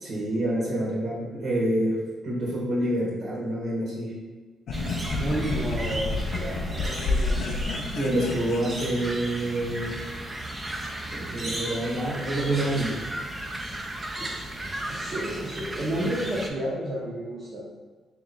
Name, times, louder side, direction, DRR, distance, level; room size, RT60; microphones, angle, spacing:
voice 1, 0.0-2.0 2.2-4.1 7.9-10.0 11.1-13.0, right 1 dB, 60° right, -5 dB, 1.3 m, -27 dB
sound 1, 4.7-9.4, left 3 dB, 70° left, 0.5 m, -30 dB
sound 2, 4.7-16.5, right 1 dB, 20° right, 0.5 m, -35 dB
voice 2, 5.2-7.6 14.2-14.5 14.9-17.6, right 1 dB, 45° right, -8 dB, 0.9 m, -31 dB
3.1 x 3.0 x 3.8 m, 1.3 s
cardioid pair, 90°, 0 cm